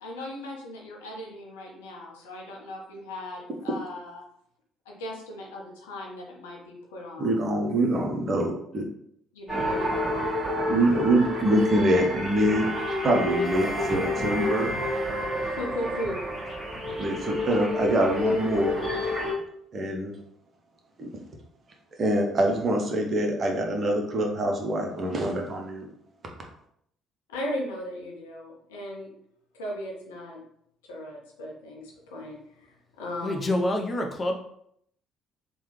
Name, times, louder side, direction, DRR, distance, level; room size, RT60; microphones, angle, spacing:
voice 1, 0.0-4.2 4.9-7.5 9.3-10.0 15.5-16.2 27.3-29.1 29.5-30.4 30.9-32.7 33.0-33.6, left 1 dB, 75° left, -1 dB, 0.7 m, -37 dB
voice 2, 7.2-8.8 10.7-12.7 13.0-14.7 17.0-18.8 19.7-20.1 21.0-21.1 22.0-25.9, right 1 dB, 45° right, 1 dB, 0.7 m, -25 dB
sound 1, 9.5-19.3, left 1 dB, 5° right, 1.3 m, -29 dB
voice 3, 33.2-34.3, left 1 dB, 30° left, 3 dB, 0.6 m, -26 dB
3.2 x 2.2 x 3.1 m, 0.70 s
figure-of-eight pair, 50°, 0 cm